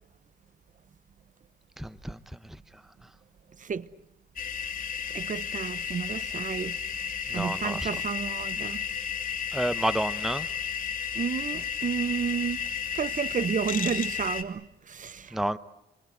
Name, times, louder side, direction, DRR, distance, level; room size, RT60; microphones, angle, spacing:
voice 1, 1.8-2.2 7.3-7.9 9.5-10.5 15.3-15.6, right 1 dB, ahead, 0.9 m, -29 dB
sound 1, 4.4-14.4, left 7 dB, 45° left, 3.1 m, -33 dB
voice 2, 5.1-6.8 7.3-8.8 11.2-12.6 13.0-15.4, right 6 dB, 40° right, 1.0 m, -31 dB
28.0 x 23.0 x 8.1 m
cardioid pair, 90°, 20 cm